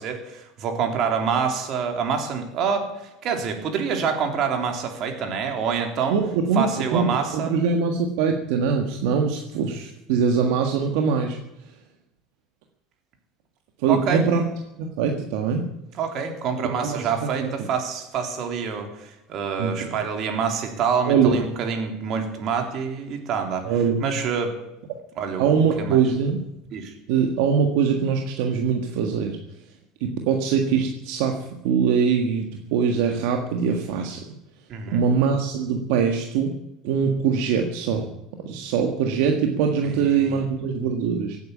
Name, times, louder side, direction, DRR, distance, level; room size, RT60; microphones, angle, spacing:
voice 1, 0.0-2.9 3.2-6.2 6.5-7.5 13.9-14.2 16.0-23.7 24.0-24.6 25.2-26.0 26.7-26.9 34.7-35.0 39.8-40.4, right 6 dB, 55° right, 4 dB, 3.6 m, -26 dB
voice 2, 6.1-11.4 13.8-14.4 14.8-15.6 16.8-17.5 19.6-19.9 21.1-21.4 23.6-24.0 25.4-26.4 27.1-29.4 30.0-34.2 34.9-36.6 36.8-38.1 38.4-41.4, right 6 dB, 75° right, 3 dB, 1.7 m, -22 dB
16.5 x 9.3 x 8.7 m, 0.90 s
supercardioid pair, 100°, 0 cm